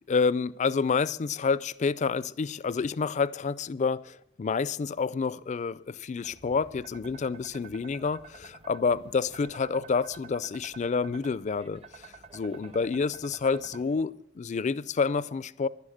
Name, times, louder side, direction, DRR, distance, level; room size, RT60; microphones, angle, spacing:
voice 1, 0.1-12.1 12.3-15.7, left 5 dB, 35° left, 18 dB, 0.4 m, -28 dB
sound 1, 6.2-14.0, right 4 dB, 30° right, 0.7 m, -50 dB
11.5 x 9.9 x 6.3 m, 0.77 s
head